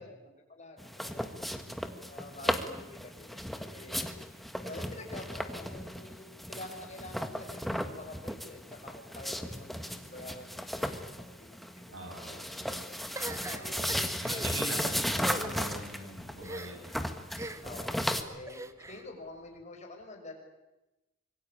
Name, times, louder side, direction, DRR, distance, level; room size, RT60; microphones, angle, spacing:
voice 1, 0.0-1.7 2.1-15.3 15.7-16.1 17.6-20.3, left 2 dB, 35° left, 2 dB, 6.1 m, -48 dB
sound 1, 0.8-18.2, equal, ahead, 1.5 m, -36 dB
voice 2, 11.9-12.4 13.2-16.8, right 2 dB, 80° right, 3 dB, 7.7 m, -43 dB
sound 2, 13.2-14.5 15.1-15.5 16.4-16.9 17.4-17.8 18.5-19.0, right 2 dB, 15° right, 1.0 m, -41 dB
25.5 x 23.0 x 8.9 m, 0.98 s
head